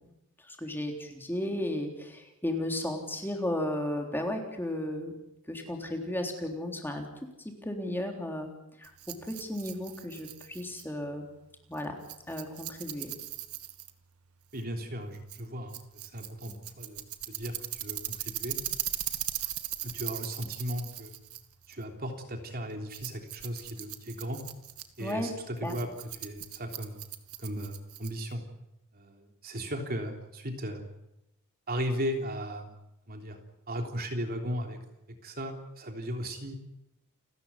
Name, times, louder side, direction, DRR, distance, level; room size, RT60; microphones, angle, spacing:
voice 1, 0.5-5.1 5.5-7.1 7.6-8.5 8.8-8.9 9.2-11.3 11.7-12.0 12.3-13.1 25.0-25.3 25.6-25.8, left 1 dB, 10° left, 2 dB, 3.6 m, -34 dB
Rattle, 8.8-28.4, right 14 dB, 75° right, 1.9 m, -40 dB
voice 2, 14.5-18.6 19.8-21.1 21.7-24.4 25.0-27.0 27.4-28.4 28.9-30.8 31.7-32.8 33.1-33.4 33.7-34.8 35.2-36.6, equal, 45° right, 4 dB, 3.4 m, -36 dB
29.5 x 13.5 x 9.9 m, 0.89 s
head